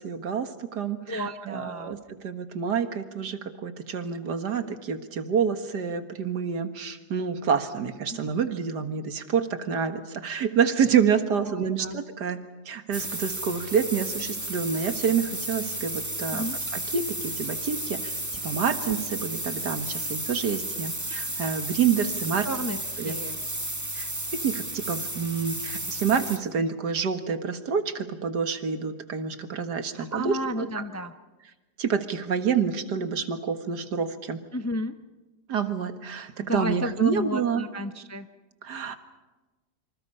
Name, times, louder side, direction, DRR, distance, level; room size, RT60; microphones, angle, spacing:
voice 1, 0.0-16.5 16.7-18.1 18.4-22.5 23.0-23.2 23.9-30.8 31.8-34.4 35.5-37.6 38.6-39.0, right 6 dB, 80° right, 8 dB, 2.1 m, -28 dB
voice 2, 1.1-1.9 8.1-8.2 11.4-12.0 16.3-16.6 22.4-22.8 23.0-23.4 29.9-31.1 34.5-34.9 36.4-38.3, equal, 15° left, 8 dB, 0.5 m, -32 dB
sound 1, 12.9-26.4, right 1 dB, 10° right, 1.8 m, -33 dB
27.5 x 26.0 x 5.6 m, 1.2 s
omnidirectional pair, 1.8 m